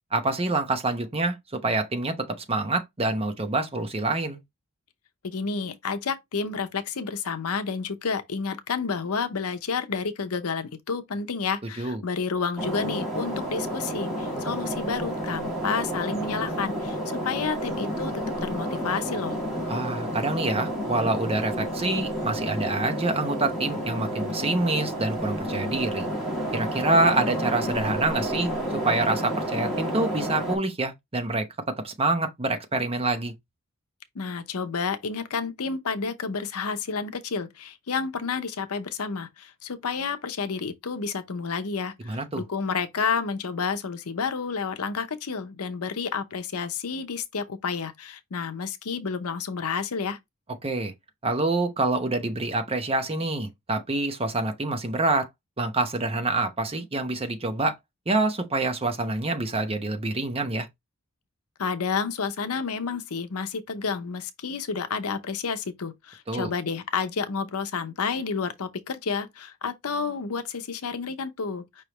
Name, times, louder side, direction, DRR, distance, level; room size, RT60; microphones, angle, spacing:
voice 1, 0.1-4.4 11.8-12.0 19.7-26.1 26.5-31.5 31.8-33.3 42.0-42.4 50.6-50.9 51.2-55.3 55.6-57.8 58.1-60.7 66.3-66.5, right 2 dB, 25° right, 0.8 m, -26 dB
voice 2, 5.2-19.4 34.1-50.2 61.6-71.8, left 5 dB, 85° left, 0.7 m, -30 dB
sound 1, 12.6-30.6, equal, ahead, 2.4 m, -30 dB
5.3 x 3.3 x 3.0 m
head